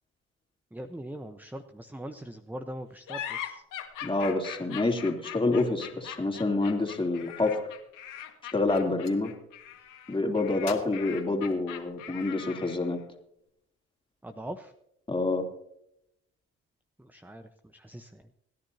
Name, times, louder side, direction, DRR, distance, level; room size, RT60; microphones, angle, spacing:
voice 1, 0.7-3.6 14.2-14.7 17.0-18.3, right 1 dB, 5° right, 8 dB, 1.0 m, -41 dB
sound 1, 3.1-12.9, left 10 dB, 70° left, 1.9 m, -41 dB
voice 2, 4.0-7.7 8.5-9.3 10.1-13.0 15.1-15.5, left 2 dB, 15° left, 2 dB, 3.2 m, -27 dB
Gunshot gunfire, 8.7-9.2 10.6-12.1, left 7 dB, 50° left, 2.3 m, -44 dB
27.5 x 10.5 x 2.8 m, 0.79 s
hypercardioid pair, 50°, 33 cm